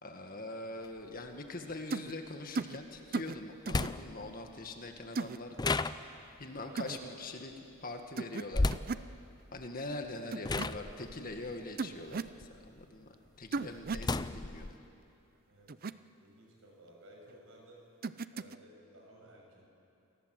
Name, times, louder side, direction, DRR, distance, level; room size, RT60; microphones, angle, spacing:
voice 1, 0.0-5.6 6.4-8.7 9.5-13.1 13.4-14.7, left 2 dB, 40° left, 4 dB, 1.9 m, -43 dB
sound 1, 0.8-0.9 3.0-3.1 3.7-4.3 5.6-6.4 8.5-9.0 9.9-10.1 10.4-12.8 13.3-14.8, left 2 dB, 20° left, 0.5 m, -34 dB
sound 2, 1.9-2.1 2.6-2.8 3.1-3.4 3.7-3.9 5.2-5.4 6.8-7.0 8.2-8.4 8.7-9.1 10.3-10.7 11.8-12.3 13.5-14.1 15.7-15.9 18.0-18.6, right 4 dB, 45° right, 0.5 m, -36 dB
voice 2, 6.5-7.5 15.5-15.8 16.2-17.9 18.3-19.7, right 1 dB, 65° right, -1 dB, 7.0 m, -56 dB
28.5 x 19.0 x 7.8 m, 2.6 s
head